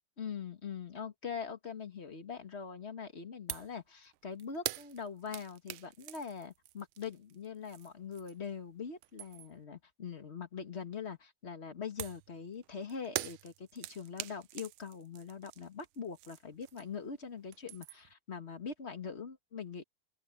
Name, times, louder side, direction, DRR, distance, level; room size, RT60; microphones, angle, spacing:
voice 1, 0.2-19.8, left 6 dB, 35° left, 1.8 m, -43 dB
sound 1, 3.5-3.8 4.1-8.5 8.9-9.6 12.0-17.1 17.4-18.1, right 16 dB, 85° right, 1.5 m, -44 dB
open air
omnidirectional pair, 2.3 m